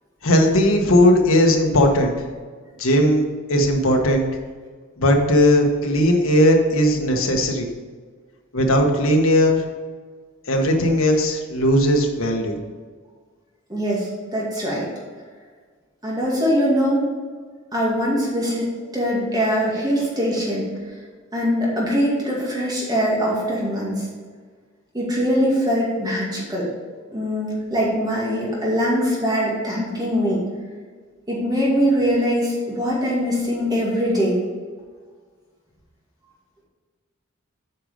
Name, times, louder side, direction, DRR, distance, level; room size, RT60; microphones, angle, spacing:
voice 1, 0.2-2.1 2.8-3.2 3.5-4.2 5.0-7.7 8.5-9.6 10.5-12.6, equal, 75° left, 2 dB, 1.3 m, -17 dB
voice 2, 13.7-14.9 16.0-17.0 17.7-20.7 21.3-24.1 24.9-26.7 27.1-30.4 31.3-34.4, equal, 20° right, -4 dB, 2.2 m, -22 dB
8.5 x 5.3 x 5.1 m, 1.5 s
head